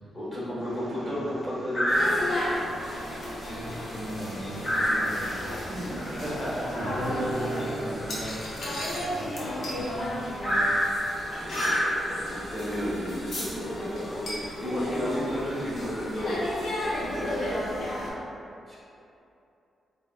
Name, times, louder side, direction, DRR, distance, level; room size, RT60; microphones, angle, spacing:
voice 1, 0.1-2.4 6.1-6.9 11.3-16.5 16.8-17.6 18.7-18.8, equal, 10° left, -11 dB, 1.3 m, -33 dB
sound 1, 0.6-1.0 1.7-2.5 3.0-3.2 3.4-9.7 10.4-12.3 13.3-13.4 13.8-13.9 14.5-14.7 15.2-16.3, equal, 45° left, 1.0 m, -30 dB
sound 2, 1.9-18.1, left 1 dB, 65° left, 0.6 m, -34 dB
voice 2, 3.3-5.4 5.7-6.2 6.7-10.0 10.5-10.6, equal, 35° right, -9 dB, 0.5 m, -38 dB
Guitar, 6.8-11.8, right 2 dB, 85° right, 0.6 m, -41 dB
3.8 x 2.1 x 2.3 m, 2.7 s
cardioid pair, 110°, 0 cm